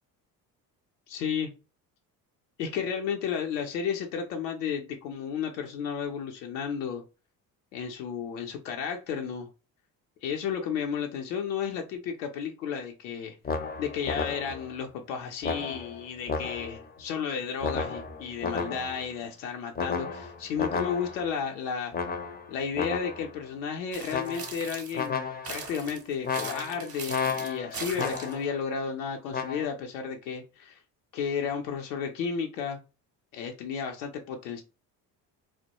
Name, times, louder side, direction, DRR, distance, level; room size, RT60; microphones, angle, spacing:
voice 1, 1.1-1.5 2.6-7.0 7.7-9.5 10.2-13.4 13.8-21.9 22.5-30.8 31.1-32.8 33.3-34.6, left 7 dB, 80° left, 0.6 m, -33 dB
sound 1, 13.4-14.8 15.4-16.9 17.6-19.1 19.8-21.4 21.9-23.4 24.1-24.7 24.9-25.7 26.2-28.6 29.3-29.7, left 5 dB, 20° left, 0.5 m, -33 dB
sound 2, 23.9-25.1 25.4-28.4, right 5 dB, 30° right, 0.7 m, -40 dB
2.2 x 2.1 x 2.8 m
hypercardioid pair, 55°, 49 cm